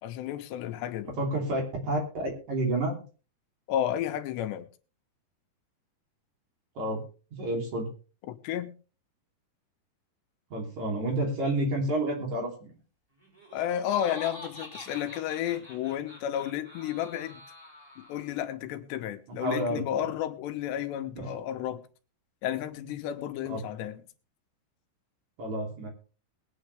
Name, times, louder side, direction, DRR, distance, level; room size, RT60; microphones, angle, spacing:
voice 1, 0.0-1.2 3.7-4.7 8.3-8.7 13.5-17.4 18.0-21.9 22.4-24.0, left 11 dB, 80° left, 3.1 m, -32 dB
voice 2, 1.2-3.0 6.8-7.0 7.3-7.9 10.5-12.7 19.4-19.8 21.2-21.3 23.5-23.6 25.4-25.9, right 1 dB, 45° right, 4.1 m, -30 dB
Laughter, 13.2-18.4, left 1 dB, 5° right, 4.1 m, -46 dB
21.0 x 9.0 x 3.3 m
omnidirectional pair, 4.9 m